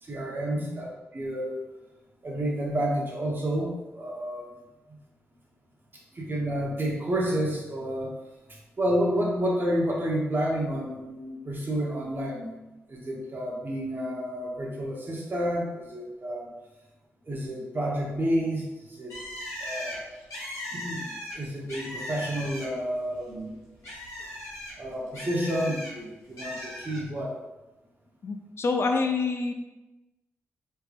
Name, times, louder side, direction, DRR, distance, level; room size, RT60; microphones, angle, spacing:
voice 1, 0.0-1.6 2.2-4.4 6.1-8.1 8.8-12.5 12.9-16.5 17.3-19.2 19.6-20.2 20.7-23.6 24.8-27.3, equal, 40° right, -2 dB, 1.0 m, -30 dB
Bird, 19.1-22.9 23.3-25.9 26.4-27.0, left 1 dB, 75° left, 1.3 m, -38 dB
voice 2, 28.2-29.5, left 4 dB, 50° left, 5 dB, 0.4 m, -27 dB
3.2 x 3.2 x 2.4 m, 1.1 s
supercardioid pair, 40°, 5 cm